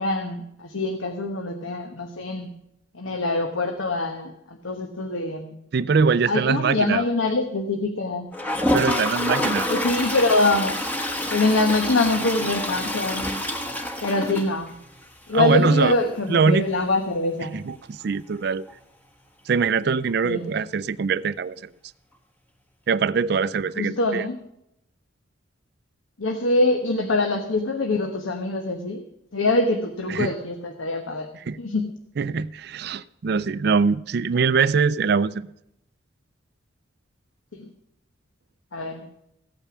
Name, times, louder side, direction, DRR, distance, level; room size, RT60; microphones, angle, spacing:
voice 1, 0.0-2.5 2.9-5.6 6.3-8.3 9.7-10.7 11.3-13.3 14.0-14.7 15.3-17.6 20.2-20.5 23.8-24.4 26.2-29.0 29.3-31.3 31.6-31.9 37.5-37.6 38.7-39.0, left 2 dB, 75° left, 5 dB, 1.1 m, -24 dB
voice 2, 5.7-7.0 8.7-9.7 15.3-16.0 16.3-16.6 17.5-18.7 19.5-21.7 22.9-24.2 30.1-30.3 31.5-31.6 32.2-35.5, right 5 dB, 50° right, 17 dB, 0.4 m, -22 dB
Toilet flush, 8.3-15.0 15.4-15.5 15.7-15.8 16.0-16.1 18.7-18.8 20.1-20.2, left 1 dB, 10° left, 1.1 m, -27 dB
15.5 x 8.9 x 6.0 m, 0.80 s
head